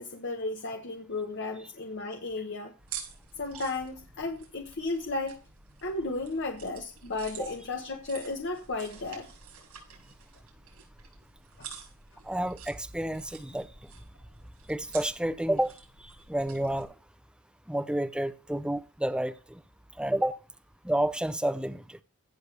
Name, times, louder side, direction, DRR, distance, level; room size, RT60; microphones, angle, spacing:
voice 1, 0.0-2.7 3.4-5.4 5.8-9.3 11.6-11.7, left 3 dB, 55° left, 1.2 m, -34 dB
sound 1, 2.8-16.9, right 7 dB, 90° right, 6.9 m, -48 dB
voice 2, 12.2-13.7 14.7-15.8 16.3-16.9 17.7-19.6 20.0-20.4 20.8-22.0, right 1 dB, 5° right, 0.6 m, -30 dB
16.0 x 6.8 x 3.4 m
head